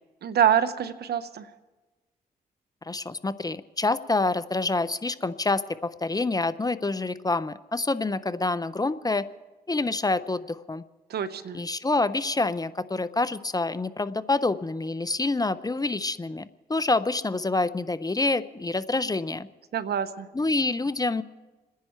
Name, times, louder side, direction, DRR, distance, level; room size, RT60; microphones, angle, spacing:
voice 1, 0.2-1.5 11.1-11.6 19.7-20.3, right 9 dB, 75° right, 13 dB, 1.0 m, -25 dB
voice 2, 2.9-9.3 9.7-10.8 11.5-19.5 20.3-21.2, left 3 dB, 20° left, 14 dB, 0.8 m, -27 dB
28.0 x 10.5 x 4.5 m, 1.1 s
supercardioid pair, 55°, 17 cm